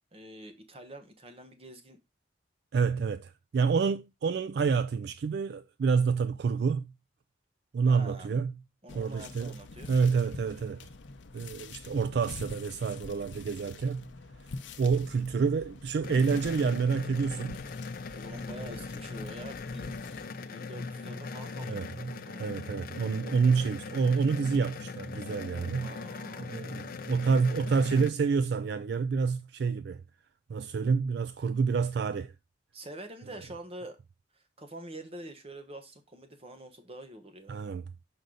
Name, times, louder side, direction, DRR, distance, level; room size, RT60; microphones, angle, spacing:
voice 1, 0.1-2.0 7.9-8.3 8.8-9.9 18.1-20.0 20.5-22.5 25.8-26.5 32.7-34.0 34.3-37.6, right 1 dB, 30° right, 1.2 m, -46 dB
voice 2, 2.7-6.9 7.7-8.5 8.9-9.6 9.9-10.9 11.3-14.1 14.8-17.6 21.7-25.9 26.4-30.0 30.5-32.3 37.5-37.8, right 5 dB, 60° right, 0.3 m, -28 dB
sound 1, 8.9-20.3, left 3 dB, 80° left, 0.7 m, -47 dB
sound 2, 16.0-28.1, left 4 dB, 50° left, 0.5 m, -40 dB
6.4 x 5.2 x 3.9 m
head